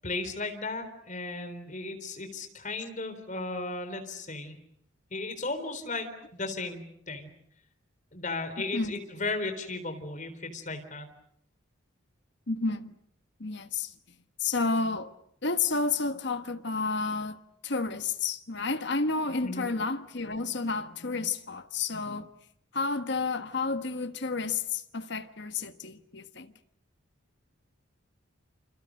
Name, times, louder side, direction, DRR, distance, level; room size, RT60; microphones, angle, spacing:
voice 1, 0.0-4.5 5.1-7.3 8.1-11.1 19.4-19.6, left 3 dB, 35° left, 3.9 m, -35 dB
voice 2, 12.5-13.0 13.4-13.9 14.4-15.1 15.4-17.4 17.6-22.3 22.7-26.5, left 4 dB, 55° left, 1.4 m, -31 dB
28.5 x 27.5 x 6.6 m
head